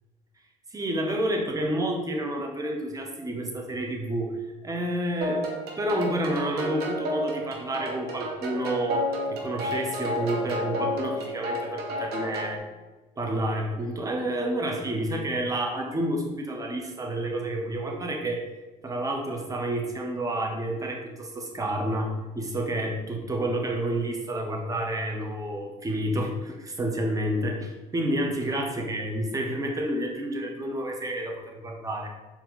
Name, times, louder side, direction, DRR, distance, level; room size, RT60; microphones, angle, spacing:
voice 1, 0.7-4.3 4.6-5.4 5.8-9.0 9.3-12.6 13.2-18.4 18.8-22.1 22.4-32.1, right 1 dB, 20° right, 1 dB, 0.9 m, -29 dB
sound 1, 5.2-12.6, left 1 dB, 60° right, 1.1 m, -31 dB
4.4 x 2.9 x 3.9 m, 1.2 s
hypercardioid pair, 70°, 18 cm